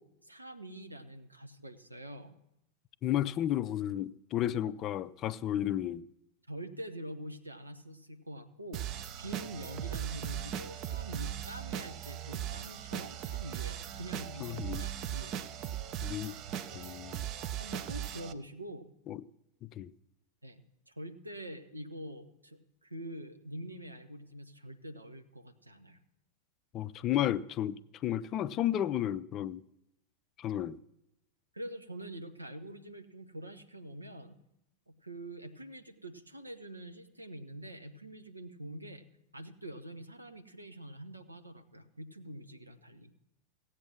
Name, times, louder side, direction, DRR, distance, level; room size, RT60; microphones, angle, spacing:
voice 1, 0.0-2.3 6.5-8.9 9.2-15.7 16.6-16.9 17.6-18.9 20.4-26.0 31.5-34.4 34.9-39.0 39.3-43.1, right 1 dB, 85° right, 1.0 m, -45 dB
voice 2, 3.0-6.1 14.4-14.8 16.0-16.4 16.7-17.2 19.1-19.2 19.6-19.9 26.7-29.6 30.4-30.8, left 12 dB, 35° left, 0.4 m, -33 dB
sound 1, 8.7-18.3, right 10 dB, 35° right, 0.7 m, -38 dB
16.5 x 8.2 x 6.0 m
figure-of-eight pair, 90°, 0 cm